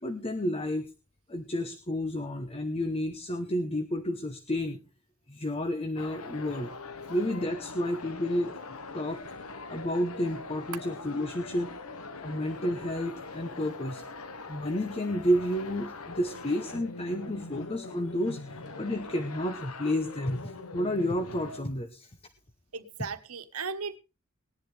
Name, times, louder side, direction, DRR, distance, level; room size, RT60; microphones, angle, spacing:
voice 1, 0.0-0.9 1.3-4.8 5.3-6.7 7.1-8.5 8.9-9.2 9.7-11.7 12.2-14.0 14.5-22.1, equal, 25° left, 0.9 m, -31 dB
sound 1, 6.0-21.6, left 3 dB, 80° left, 1.3 m, -42 dB
voice 2, 22.7-24.0, right 5 dB, 80° right, 1.3 m, -36 dB
19.5 x 11.0 x 3.4 m
head